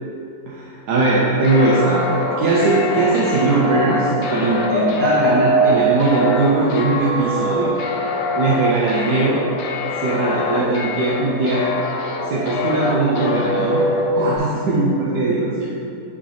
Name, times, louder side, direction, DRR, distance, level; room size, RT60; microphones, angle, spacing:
voice 1, 0.5-2.0 2.4-7.8 8.4-9.4 10.0-11.6 12.2-13.9 14.1-15.7, right 3 dB, 80° right, -5 dB, 1.3 m, -19 dB
sound 1, 1.4-14.4, left 1 dB, 65° left, 0.9 m, -23 dB
9.4 x 4.0 x 3.2 m, 2.7 s
omnidirectional pair, 1.7 m